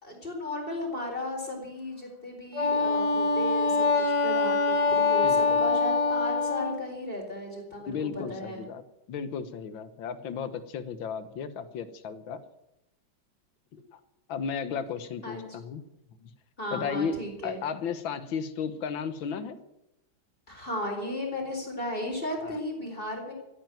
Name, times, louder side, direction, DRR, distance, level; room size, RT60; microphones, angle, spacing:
voice 1, 0.0-8.6 15.2-15.6 16.6-17.6 20.5-23.3, left 1 dB, 25° left, 0 dB, 4.5 m, -35 dB
Wind instrument woodwind instrument, 2.5-6.8, left 3 dB, 60° left, 2.0 m, -24 dB
voice 2, 5.2-5.7 7.9-12.4 14.3-15.8 16.2-16.3 16.7-17.2 17.4-19.6 22.4-22.6, left 6 dB, 80° left, 12 dB, 1.9 m, -34 dB
15.5 x 9.2 x 9.3 m, 0.88 s
omnidirectional pair, 2.1 m